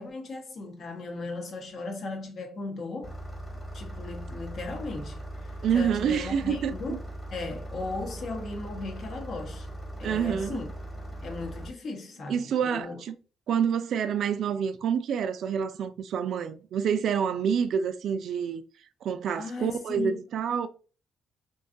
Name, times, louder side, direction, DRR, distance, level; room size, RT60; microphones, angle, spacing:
voice 1, 0.0-3.2 3.7-7.1 7.3-9.7 10.0-10.7 11.2-13.0 19.4-20.2, left 3 dB, 60° left, 0.8 m, -37 dB
Engine starting, 3.0-11.7, right 1 dB, 15° left, 1.0 m, -39 dB
voice 2, 5.6-7.0 10.0-10.6 12.3-13.1 13.5-18.6 19.0-20.7, right 7 dB, 70° right, 0.3 m, -27 dB
2.5 x 2.3 x 2.4 m
cardioid pair, 90°, 0 cm